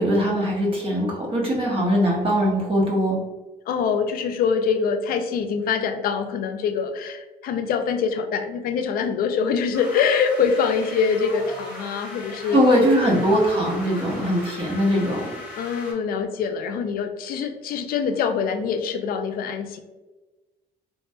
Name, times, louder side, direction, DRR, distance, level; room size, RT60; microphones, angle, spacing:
voice 1, 0.0-3.2 12.5-15.3, equal, 35° right, -2 dB, 1.0 m, -21 dB
voice 2, 3.7-12.9 15.6-19.8, left 6 dB, 60° left, 7 dB, 0.4 m, -24 dB
sound 1, 9.7-15.9, left 1 dB, 10° right, 1.3 m, -38 dB
3.0 x 2.7 x 2.3 m, 1.2 s
cardioid pair, 110°, 17 cm